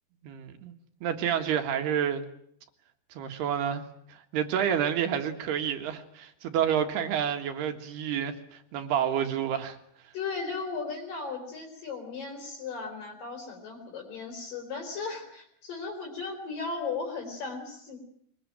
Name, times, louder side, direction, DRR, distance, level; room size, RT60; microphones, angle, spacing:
voice 1, 0.2-0.7 1.0-2.2 3.1-3.8 4.1-9.8, right 9 dB, 75° right, 6 dB, 3.7 m, -29 dB
voice 2, 10.1-18.0, left 4 dB, 55° left, 4 dB, 5.7 m, -36 dB
23.0 x 21.5 x 8.9 m, 0.68 s
omnidirectional pair, 4.8 m